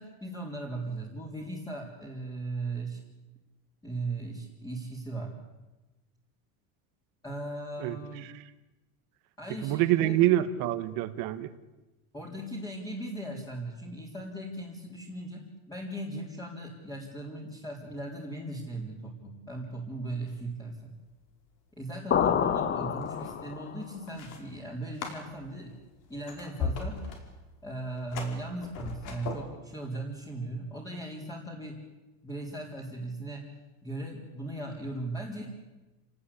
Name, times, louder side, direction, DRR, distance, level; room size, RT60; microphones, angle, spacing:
voice 1, 0.0-3.0 3.8-5.4 7.2-8.3 9.4-10.2 12.1-20.9 21.8-25.7 26.1-27.1 27.6-31.8 32.2-33.4 33.8-35.5, right 2 dB, 10° left, -3 dB, 4.0 m, -38 dB
voice 2, 9.6-11.5, right 14 dB, 55° right, 11 dB, 1.7 m, -26 dB
sound 1, 20.3-20.7 20.9-21.3 22.1-29.4, left 4 dB, 50° left, 5.1 m, -39 dB
sound 2, 22.1-23.8, left 8 dB, 30° left, 1.2 m, -28 dB
28.0 x 18.5 x 8.6 m, 1.1 s
cardioid pair, 150°, 40 cm